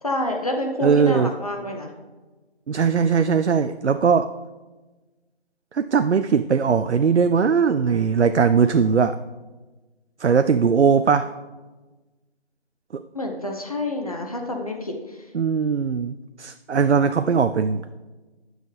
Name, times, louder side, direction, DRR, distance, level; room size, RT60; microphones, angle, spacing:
voice 1, 0.0-1.9 13.1-15.2, left 1 dB, 35° left, 2 dB, 0.9 m, -28 dB
voice 2, 0.8-1.3 2.7-4.3 5.7-9.2 10.2-11.3 12.9-13.0 15.3-17.8, right 6 dB, 90° right, 11 dB, 0.5 m, -19 dB
18.0 x 6.3 x 3.4 m, 1.2 s
figure-of-eight pair, 165°, 33 cm